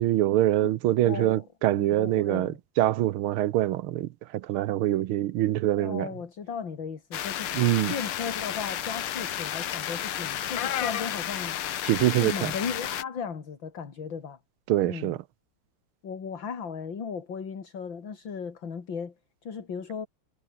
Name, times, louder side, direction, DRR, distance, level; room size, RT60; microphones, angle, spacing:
voice 1, 0.0-6.1 7.5-7.9 11.8-12.5 14.7-15.2, right 14 dB, 80° right, 1.6 m, -24 dB
voice 2, 0.6-1.4 1.7-2.6 5.8-7.5 7.9-11.6 12.2-14.4 14.9-15.2 16.0-19.1 19.4-20.1, left 6 dB, 60° left, 3.2 m, -36 dB
sound 1, 7.1-13.0, left 11 dB, 85° left, 2.1 m, -32 dB
omnidirectional pair, 2.4 m